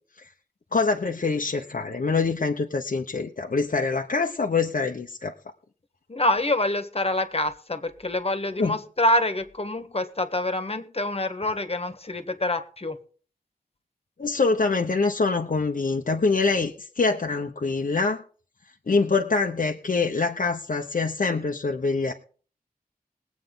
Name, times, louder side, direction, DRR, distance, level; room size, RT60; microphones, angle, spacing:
voice 1, 0.7-5.3 8.6-8.8 14.2-18.2 18.9-22.1, left 4 dB, 60° left, 2 dB, 1.1 m, -25 dB
voice 2, 6.1-13.0, left 1 dB, 40° left, 9 dB, 1.6 m, -26 dB
21.0 x 8.5 x 3.9 m, 0.42 s
wide cardioid pair, 80°, 16 cm